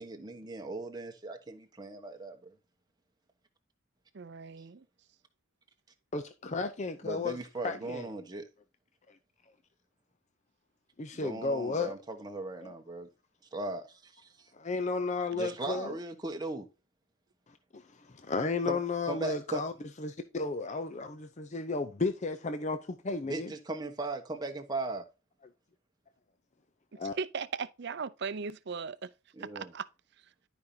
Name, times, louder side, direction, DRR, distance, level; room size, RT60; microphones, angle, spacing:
voice 1, 0.0-2.5 7.0-8.5 11.1-13.1 13.5-14.5 15.3-16.7 18.7-18.8 19.1-19.6 23.2-25.0 29.4-29.7, right 2 dB, 20° right, 1.2 m, -38 dB
voice 2, 4.1-4.8 27.2-29.1 29.4-29.9, right 5 dB, 55° right, 0.5 m, -37 dB
voice 3, 6.1-7.4 7.6-8.1 9.1-9.2 11.0-11.9 12.6-12.7 14.6-15.9 17.7-19.7 20.0-23.5 27.0-27.1, left 3 dB, 35° left, 0.6 m, -33 dB
12.0 x 5.2 x 2.8 m
head